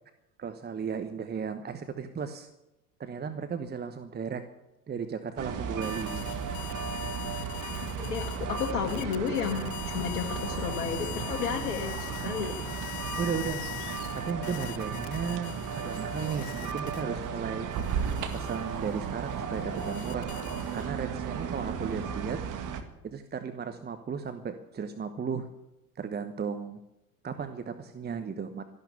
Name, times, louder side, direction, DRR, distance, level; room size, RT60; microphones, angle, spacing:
voice 1, 0.4-2.5 3.0-4.4 4.9-6.4 13.2-13.6 14.1-17.7 18.3-20.3 20.7-22.4 23.0-25.5 25.9-26.8 27.2-28.6, right 6 dB, 20° right, 9 dB, 1.1 m, -35 dB
sound 1, 5.4-22.8, right 6 dB, 40° right, 2.0 m, -35 dB
sound 2, 5.8-17.3 17.7-21.1, left 20 dB, 40° left, 0.6 m, -43 dB
voice 2, 8.0-12.7, left 7 dB, 65° left, 3 dB, 1.8 m, -32 dB
sound 3, 13.0-18.1, right 4 dB, 60° right, 4.7 m, -57 dB
13.5 x 12.0 x 8.4 m, 0.93 s
figure-of-eight pair, 75°, 47 cm